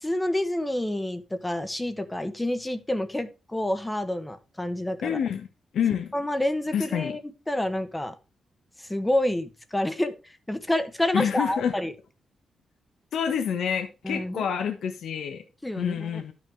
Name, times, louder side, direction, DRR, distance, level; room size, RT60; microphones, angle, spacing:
voice 1, 0.0-5.2 6.1-7.2 7.5-8.1 8.8-10.2 10.5-11.9 14.0-14.4 15.6-16.2, left 1 dB, 10° left, 1.0 m, -28 dB
voice 2, 5.0-5.5 5.7-6.1 6.7-7.2 11.1-11.7 13.1-15.4 15.8-16.3, left 8 dB, 70° left, 1.4 m, -27 dB
12.0 x 6.2 x 3.5 m
wide cardioid pair, 140°, 0 cm